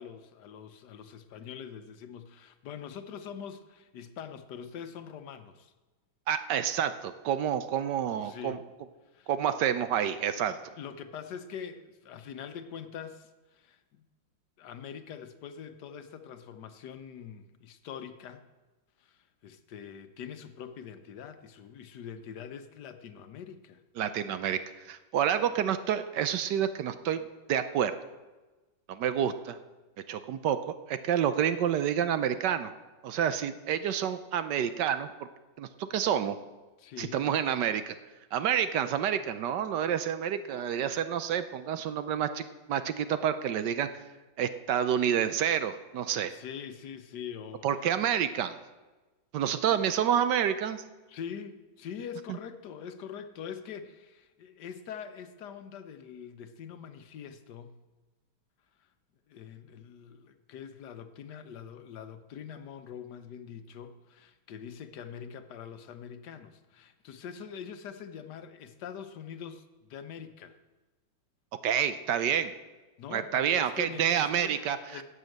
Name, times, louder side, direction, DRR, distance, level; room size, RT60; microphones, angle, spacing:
voice 1, 0.0-5.7 8.2-8.6 9.1-9.3 10.5-14.0 14.6-18.5 19.0-23.8 36.8-37.2 46.3-47.7 51.1-57.8 59.3-70.6 73.0-75.0, left 7 dB, 65° left, 9 dB, 1.4 m, -44 dB
voice 2, 6.3-8.6 9.3-10.6 24.0-24.6 24.8-28.0 28.9-29.6 30.1-32.7 33.0-35.1 35.6-36.4 37.0-37.9 38.3-44.0 44.4-46.3 47.6-48.6 49.3-50.8 52.3-52.4 71.6-72.5 73.1-75.0, right 9 dB, 70° right, 11 dB, 1.3 m, -29 dB
12.5 x 8.1 x 7.8 m, 1.2 s
omnidirectional pair, 2.0 m